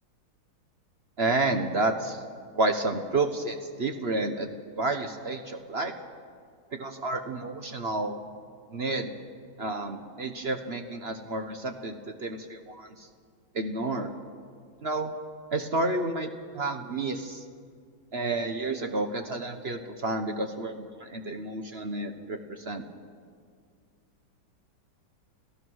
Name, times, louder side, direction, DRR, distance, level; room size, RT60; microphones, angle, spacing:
voice 1, 1.2-2.2 2.5-4.5 4.8-5.9 6.7-8.2 8.7-9.1 9.6-13.1 13.5-14.1 14.8-15.1 15.5-17.4 18.1-22.8, right 2 dB, 45° right, 6 dB, 0.9 m, -30 dB
29.0 x 15.5 x 6.3 m, 2.1 s
omnidirectional pair, 2.2 m